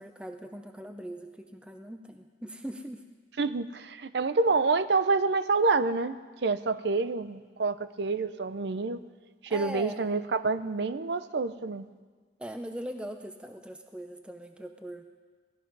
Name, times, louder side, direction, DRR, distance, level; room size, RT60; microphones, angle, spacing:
voice 1, 0.0-3.0 9.5-10.0 12.4-15.1, equal, 5° right, 6 dB, 0.6 m, -40 dB
voice 2, 3.4-6.2 6.4-9.0 9.4-11.8, right 4 dB, 65° right, 13 dB, 0.6 m, -27 dB
18.0 x 13.5 x 5.4 m, 1.5 s
head